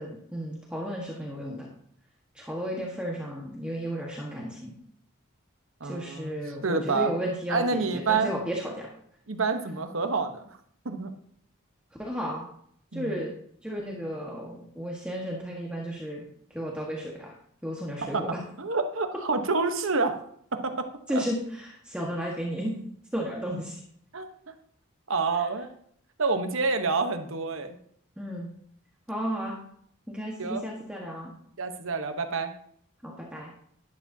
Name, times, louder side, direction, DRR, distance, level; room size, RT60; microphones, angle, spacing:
voice 1, 0.0-1.7 2.3-4.7 5.8-8.9 12.0-12.5 12.9-13.3 13.6-17.4 17.6-18.4 21.1-22.7 23.1-23.8 28.2-28.5 29.1-29.6 30.1-31.3 33.0-33.5, equal, 5° right, -3 dB, 1.4 m, -33 dB
voice 2, 5.8-6.4 6.6-7.1 7.5-8.3 9.3-10.6 10.8-11.1 12.9-13.2 18.0-18.2 18.6-20.2 20.5-20.9 21.1-21.2 24.1-24.5 25.1-25.7 26.2-27.8 30.4-30.6 31.6-32.5, right 4 dB, 70° right, 7 dB, 1.1 m, -28 dB
12.0 x 11.0 x 2.8 m, 0.65 s
head